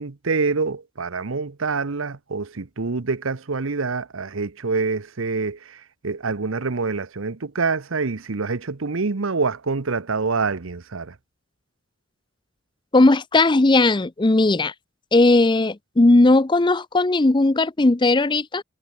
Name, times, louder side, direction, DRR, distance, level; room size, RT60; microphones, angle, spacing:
voice 1, 0.0-11.1, right 4 dB, 75° right, 0.9 m, -26 dB
voice 2, 12.9-14.7 15.1-18.6, left 2 dB, 20° left, 0.6 m, -17 dB
head